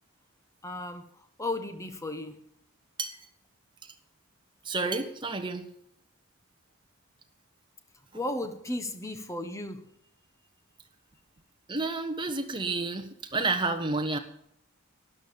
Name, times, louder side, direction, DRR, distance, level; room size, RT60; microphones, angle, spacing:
voice 1, 0.6-2.4 8.1-9.9, left 1 dB, 15° left, 8 dB, 1.2 m, -35 dB
voice 2, 4.6-5.7 11.7-14.2, right 3 dB, 20° right, 6 dB, 1.4 m, -30 dB
12.5 x 10.5 x 7.0 m, 0.69 s
head